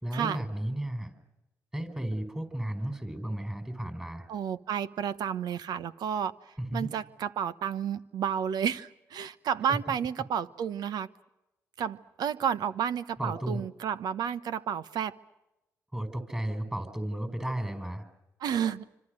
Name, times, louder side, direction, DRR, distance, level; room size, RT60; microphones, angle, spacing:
voice 1, 0.0-1.1 1.7-4.3 6.6-6.9 9.7-9.8 13.2-13.6 15.9-18.0, right 1 dB, 10° right, 6 dB, 4.8 m, -33 dB
voice 2, 4.3-6.3 6.7-11.1 11.8-15.2 18.4-18.8, right 8 dB, 75° right, 14 dB, 1.1 m, -31 dB
26.5 x 26.0 x 6.5 m, 0.93 s
cardioid pair, 70°, 7 cm